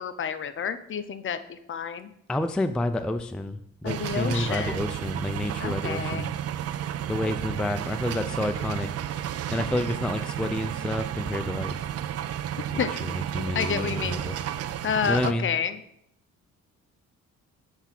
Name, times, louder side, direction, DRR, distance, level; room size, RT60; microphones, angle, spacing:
voice 1, 0.0-2.1 3.8-4.8 5.6-6.3 12.7-12.9 13.5-14.4 14.8-15.8, left 7 dB, 40° left, 11 dB, 0.6 m, -30 dB
voice 2, 2.3-6.3 7.1-8.9 9.5-11.7 12.7-14.2 15.1-15.5, left 1 dB, 5° left, 9 dB, 0.3 m, -29 dB
sound 1, 3.9-15.3, right 10 dB, 55° right, 0.5 m, -32 dB
7.2 x 3.5 x 5.8 m, 0.75 s
cardioid pair, 90°, 30 cm